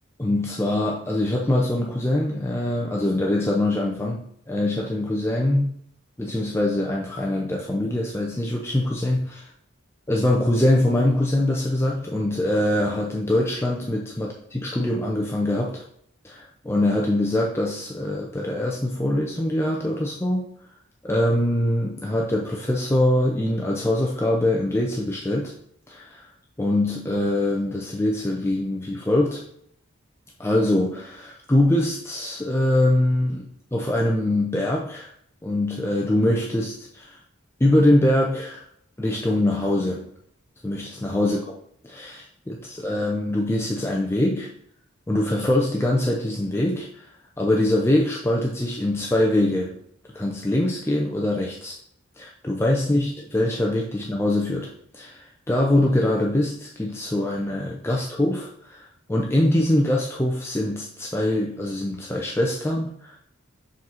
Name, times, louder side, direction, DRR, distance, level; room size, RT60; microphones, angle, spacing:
voice 1, 0.2-5.8 6.2-9.5 10.1-15.8 16.2-20.5 21.0-25.5 25.9-26.3 26.6-29.4 30.4-35.1 35.4-37.2 37.6-38.6 39.0-40.1 40.6-41.5 41.8-44.5 45.1-47.1 47.4-49.8 50.1-51.8 52.2-63.2, left 1 dB, 10° left, -1 dB, 0.5 m, -23 dB
5.1 x 3.9 x 5.6 m, 0.69 s
head